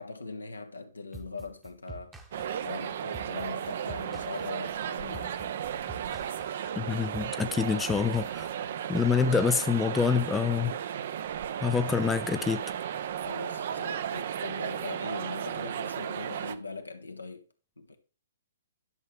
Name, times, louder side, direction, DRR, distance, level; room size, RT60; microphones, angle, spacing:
voice 1, 0.0-2.2 2.6-5.6 13.2-17.4 17.8-18.0, left 3 dB, 80° left, 1.3 m, -41 dB
sound 1, 1.1-8.9, right 2 dB, 10° right, 1.0 m, -47 dB
sound 2, 2.3-16.5, right 9 dB, 50° right, 0.6 m, -35 dB
voice 2, 6.8-8.5 8.9-10.8 11.6-12.6, left 6 dB, 10° left, 0.4 m, -26 dB
11.0 x 6.5 x 3.2 m
figure-of-eight pair, 120°, 0 cm